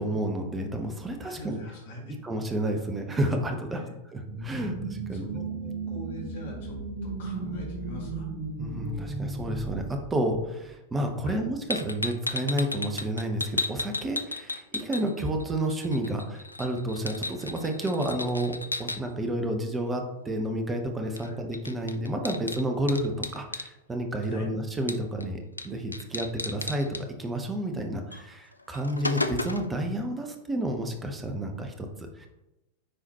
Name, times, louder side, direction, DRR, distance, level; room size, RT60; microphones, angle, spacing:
voice 1, 0.0-1.6 2.2-5.3 8.6-18.5 18.8-25.4 25.6-26.9 27.2-31.9 32.2-32.3, right 1 dB, 15° right, 4 dB, 1.0 m, -30 dB
voice 2, 1.2-2.2 3.7-4.0 5.1-8.3 11.2-11.4 21.2-21.4 24.3-24.5, equal, 55° left, -2 dB, 1.9 m, -43 dB
sound 1, 4.2-10.7, right 3 dB, 40° right, 1.5 m, -35 dB
sound 2, 11.7-15.4 15.7-19.0 21.2-21.3 21.5-23.7 24.9-25.2 25.6-25.7 25.9-27.0 28.1-28.2 28.6-29.8, left 2 dB, 85° left, 0.4 m, -34 dB
9.8 x 4.1 x 3.0 m, 0.95 s
figure-of-eight pair, 90°, 0 cm